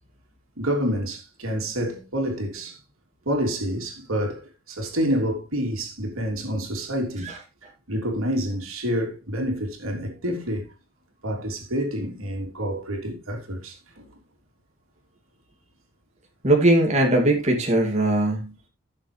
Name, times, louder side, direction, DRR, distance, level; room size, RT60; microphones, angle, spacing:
voice 1, 0.6-2.8 3.2-7.3 7.9-10.7 11.2-14.0, equal, 80° right, 3.2 m, -28 dB
voice 2, 16.4-18.5, right 1 dB, 30° right, 2.6 m, -20 dB
15.5 x 7.2 x 3.3 m
head